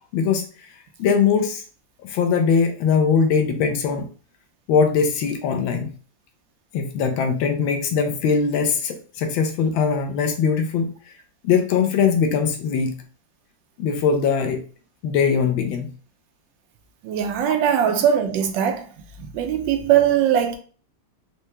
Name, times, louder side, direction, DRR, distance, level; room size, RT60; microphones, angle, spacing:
voice 1, 0.1-0.4 1.0-1.6 2.0-4.1 4.7-5.9 6.7-10.9 11.4-13.0 13.8-14.6 15.0-15.9, left 6 dB, 85° left, 1.4 m, -21 dB
voice 2, 17.0-18.9 19.2-20.6, right 9 dB, 75° right, 1.2 m, -20 dB
4.5 x 2.2 x 2.8 m
omnidirectional pair, 2.1 m